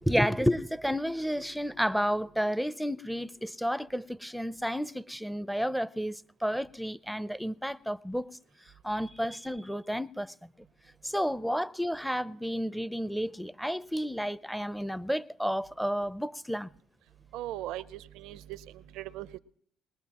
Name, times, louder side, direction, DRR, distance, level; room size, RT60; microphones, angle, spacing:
voice 1, 0.0-8.3 8.8-10.5 11.0-16.7, equal, ahead, 0.5 m, -31 dB
voice 2, 17.3-18.6 18.9-19.4, right 14 dB, 80° right, 0.5 m, -39 dB
21.0 x 20.0 x 2.9 m
supercardioid pair, 70°, 0 cm